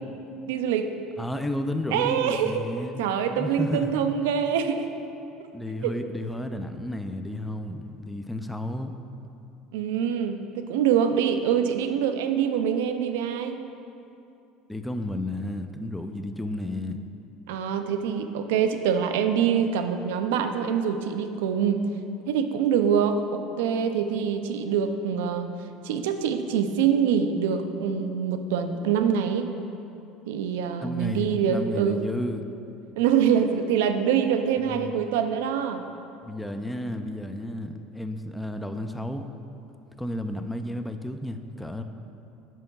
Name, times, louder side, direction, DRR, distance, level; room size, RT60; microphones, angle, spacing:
voice 1, 0.5-0.9 1.9-2.6 3.0-4.9 9.7-13.6 17.5-21.9 22.3-25.5 25.8-29.5 30.3-32.0 33.0-35.8, right 8 dB, 65° right, 7 dB, 0.4 m, -25 dB
voice 2, 1.2-3.0 3.4-3.9 5.5-8.9 14.7-17.0 30.8-32.4 34.7-35.0 36.2-39.3 40.0-41.8, left 1 dB, 5° left, 7 dB, 0.4 m, -32 dB
5.1 x 4.6 x 5.6 m, 2.7 s
figure-of-eight pair, 65°, 0 cm